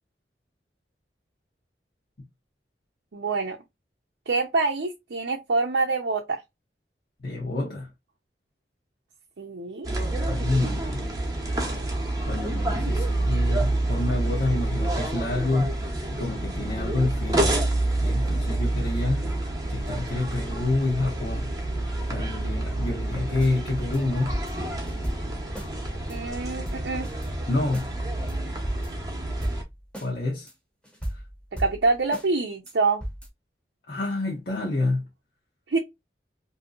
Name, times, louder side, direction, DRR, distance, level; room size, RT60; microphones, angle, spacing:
voice 1, 3.1-3.6 4.3-6.4 9.4-9.9 26.1-27.1 31.6-33.0 35.7-35.8, right 3 dB, 85° right, 0.6 m, -26 dB
voice 2, 7.2-7.9 10.2-11.1 12.3-21.7 22.1-24.3 27.5-27.9 30.0-30.5 31.1-31.2 33.9-35.0, left 2 dB, 55° left, 0.9 m, -28 dB
sound 1, 9.8-29.6, right 1 dB, 20° right, 0.8 m, -28 dB
sound 2, 23.4-23.5 23.9-24.0 24.3-25.7 26.1-26.2 26.5-27.3 27.7-27.9 28.3-28.4 28.6-29.1 29.4-30.1 30.5-30.6 30.8-32.3 32.7-32.8 33.0-33.3, equal, 5° left, 0.9 m, -36 dB
2.9 x 2.6 x 2.4 m
head